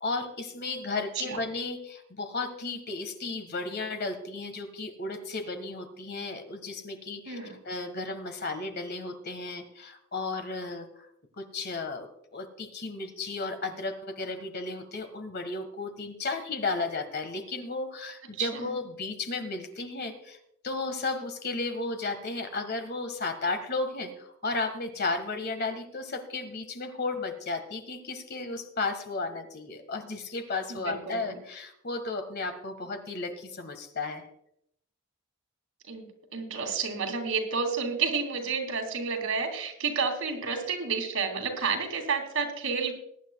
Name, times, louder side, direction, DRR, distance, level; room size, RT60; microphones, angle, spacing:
voice 1, 0.0-11.1 11.4-12.1 12.3-20.4 20.6-34.3, left 3 dB, 50° left, 7 dB, 1.7 m, -34 dB
voice 2, 18.4-18.7 30.7-31.4 35.9-42.9, right 5 dB, 90° right, 2 dB, 2.7 m, -30 dB
21.5 x 10.5 x 2.3 m, 0.73 s
head